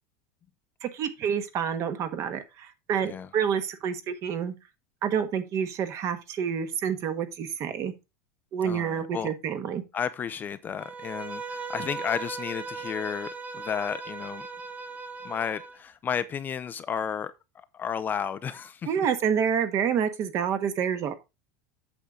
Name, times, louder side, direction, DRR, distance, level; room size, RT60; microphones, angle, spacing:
voice 1, 0.8-4.5 5.0-7.9 8.5-9.8 18.8-21.1, right 7 dB, 35° right, 1.4 m, -28 dB
voice 2, 8.6-9.3 9.9-14.5 15.2-17.3 17.7-18.9, left 7 dB, 20° left, 0.5 m, -32 dB
Bowed string instrument, 10.8-15.8, right 4 dB, 15° right, 1.0 m, -38 dB
8.6 x 7.1 x 3.8 m
supercardioid pair, 150°, 8 cm